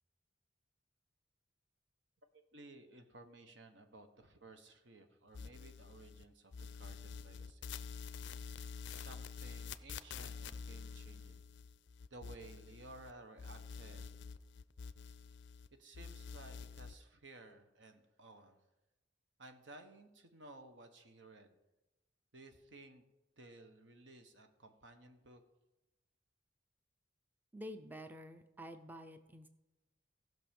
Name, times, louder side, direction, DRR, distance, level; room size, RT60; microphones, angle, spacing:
voice 1, 2.3-7.7 8.9-11.5 12.1-14.1 15.8-18.6 19.4-21.6 22.3-23.0 23.4-25.4, right 2 dB, 75° right, 7 dB, 1.3 m, -57 dB
sound 1, 5.3-6.2 6.5-13.1 13.4-15.7 15.9-16.9, left 5 dB, 70° left, 0.4 m, -48 dB
voice 2, 27.5-29.5, equal, 10° right, 8 dB, 0.5 m, -49 dB
16.0 x 6.1 x 5.3 m, 0.99 s
head